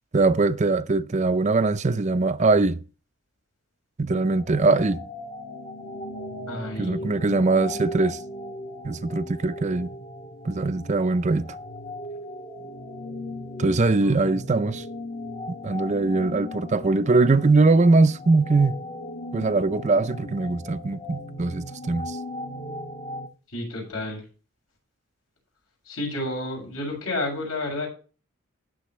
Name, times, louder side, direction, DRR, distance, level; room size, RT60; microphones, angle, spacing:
voice 1, 0.1-2.8 4.0-5.0 6.8-8.2 8.8-9.9 10.4-11.6 13.6-14.8 15.5-18.8 19.3-22.2, right 3 dB, 30° right, 0.5 m, -21 dB
sound 1, 4.1-23.3, left 1 dB, 40° left, 1.2 m, -38 dB
voice 2, 6.5-7.0 14.0-14.2 23.5-24.2 25.9-27.9, left 2 dB, 80° left, 7.2 m, -30 dB
18.0 x 7.0 x 3.2 m
head